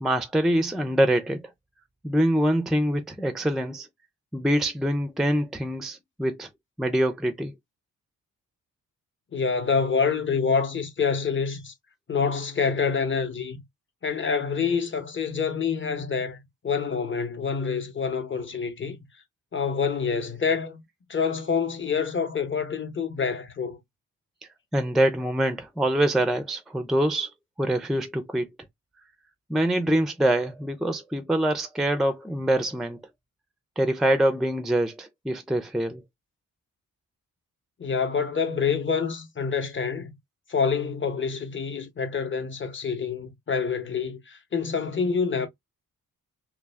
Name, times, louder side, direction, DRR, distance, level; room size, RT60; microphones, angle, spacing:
voice 1, 0.0-1.4 2.0-3.9 4.3-6.5 6.8-7.5 24.7-27.3 27.6-28.5 29.5-33.0 33.8-36.0, right 1 dB, ahead, 0.4 m, -24 dB
voice 2, 9.3-11.7 12.1-13.6 14.0-19.0 19.5-20.8 21.1-23.8 37.8-40.1 40.5-45.5, left 5 dB, 35° left, 0.8 m, -27 dB
2.4 x 2.1 x 3.2 m
cardioid pair, 75°, 34 cm